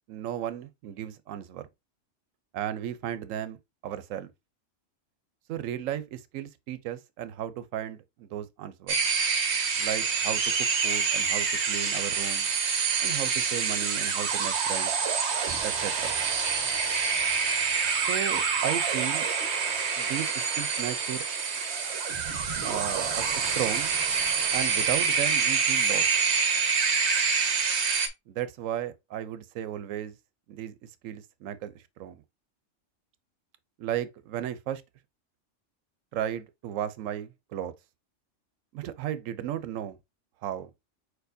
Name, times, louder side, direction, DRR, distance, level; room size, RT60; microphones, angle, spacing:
voice 1, 0.1-1.7 2.5-3.6 3.8-4.3 5.5-9.0 9.8-10.4 10.8-12.5 13.0-14.9 15.6-16.1 18.1-19.3 20.0-21.2 22.6-23.9 24.5-26.1 28.3-30.1 30.5-30.7 31.0-32.2 33.8-34.8 36.1-37.7 38.7-40.0 40.4-40.7, right 11 dB, 85° right, 1.0 m, -35 dB
sound 1, 8.9-28.1, right 5 dB, 65° right, 1.1 m, -27 dB
4.6 x 4.5 x 2.6 m
omnidirectional pair, 1.3 m